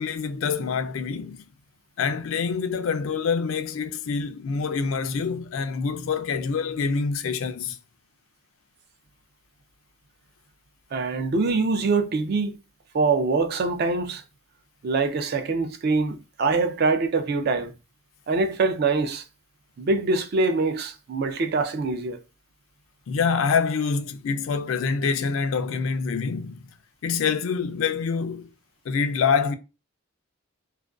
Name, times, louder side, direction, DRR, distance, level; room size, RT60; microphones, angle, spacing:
voice 1, 0.0-1.4 2.0-7.8 23.1-26.7 27.0-28.5 28.9-29.5, left 5 dB, 70° left, 0.3 m, -26 dB
voice 2, 10.9-12.6 12.9-14.2 14.8-17.7 18.3-19.2 19.8-22.2, right 3 dB, 50° right, 0.4 m, -24 dB
2.4 x 2.2 x 2.3 m
head